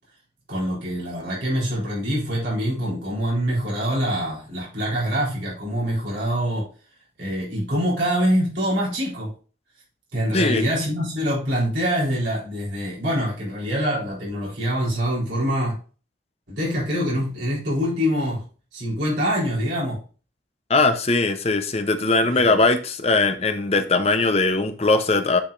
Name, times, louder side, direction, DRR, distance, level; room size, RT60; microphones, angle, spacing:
voice 1, 0.5-6.7 7.2-9.3 10.1-15.8 16.5-18.4 18.7-20.0 22.2-22.6, equal, 65° right, -6 dB, 3.9 m, -25 dB
voice 2, 10.3-10.6 20.7-25.4, left 3 dB, 30° left, 8 dB, 0.7 m, -20 dB
10.0 x 4.8 x 2.5 m, 0.37 s
head